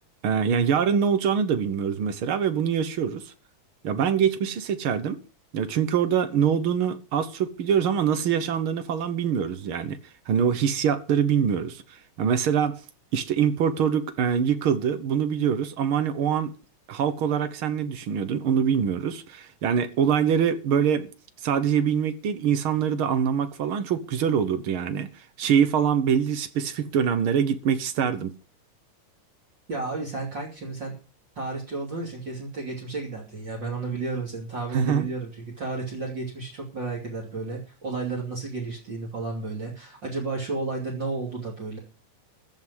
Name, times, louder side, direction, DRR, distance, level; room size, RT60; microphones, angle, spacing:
voice 1, 0.2-3.3 3.8-5.2 5.5-10.0 10.3-12.8 13.1-16.5 16.9-21.1 21.4-25.1 25.4-28.3 34.7-35.1, right 7 dB, 60° right, 1.6 m, -24 dB
voice 2, 29.7-31.0 31.3-41.8, right 3 dB, 40° right, 3.3 m, -32 dB
14.5 x 5.3 x 9.7 m
omnidirectional pair, 3.4 m